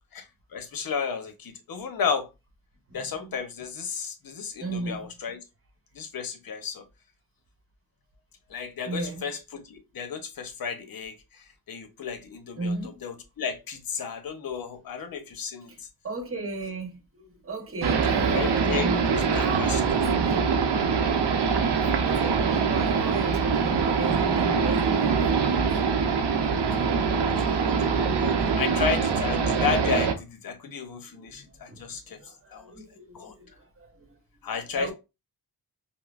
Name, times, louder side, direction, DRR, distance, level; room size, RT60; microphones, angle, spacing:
voice 1, 0.1-2.3 2.9-5.4 5.9-6.8 8.5-12.8 13.0-15.9 18.3-19.8 26.5-32.7 33.1-33.3 34.4-34.9, left 6 dB, 60° left, 0.8 m, -33 dB
voice 2, 4.6-5.1 8.8-9.3 12.6-13.0 15.7-15.8 16.0-20.5 21.7-25.6 26.5-26.7 27.3-28.3 31.1-34.2 34.7-34.9, right 3 dB, 35° right, 1.0 m, -36 dB
sound 1, 17.8-30.1, right 5 dB, 85° right, 0.7 m, -24 dB
5.4 x 2.1 x 2.4 m
wide cardioid pair, 140°, 40 cm